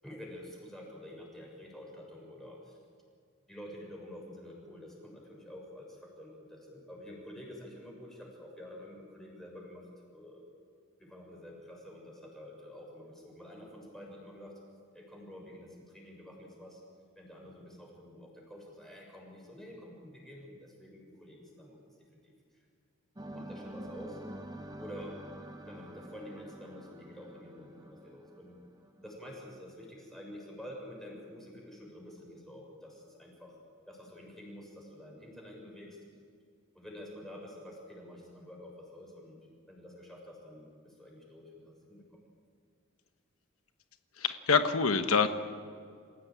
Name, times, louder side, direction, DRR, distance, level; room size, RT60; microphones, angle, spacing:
voice 1, 0.0-2.8 3.5-10.4 11.0-14.5 14.9-16.8 17.1-21.7 22.2-22.3 23.3-24.2 24.8-25.2 25.6-28.5 29.0-33.6 33.9-36.0 36.7-39.4 39.7-42.0, left 1 dB, ahead, -2 dB, 6.7 m, -48 dB
sound 1, 23.2-29.1, right 1 dB, 20° right, 1.3 m, -47 dB
voice 2, 44.2-45.3, left 5 dB, 90° left, 8 dB, 1.2 m, -25 dB
28.0 x 16.0 x 9.0 m, 2.2 s
head